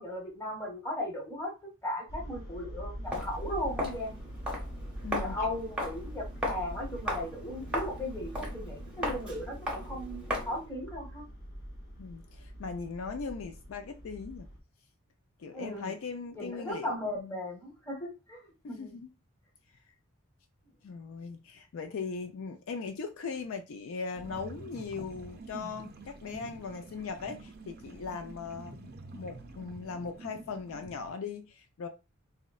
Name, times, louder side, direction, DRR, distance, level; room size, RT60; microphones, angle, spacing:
voice 1, 0.0-1.5 1.8-4.2 5.1-11.2 15.5-15.9 16.3-18.9, left 1 dB, 15° left, 1.0 m, -37 dB
sound 1, 2.1-14.6, equal, 45° left, 0.8 m, -43 dB
Walk footsteps, 3.0-10.7, equal, 5° right, 0.7 m, -37 dB
voice 2, 5.0-5.4 12.0-14.5 15.4-17.0 18.6-19.1 20.8-31.9, left 5 dB, 70° left, 0.4 m, -39 dB
sound 2, 24.1-31.1, right 2 dB, 45° right, 0.5 m, -47 dB
3.7 x 2.1 x 2.3 m
head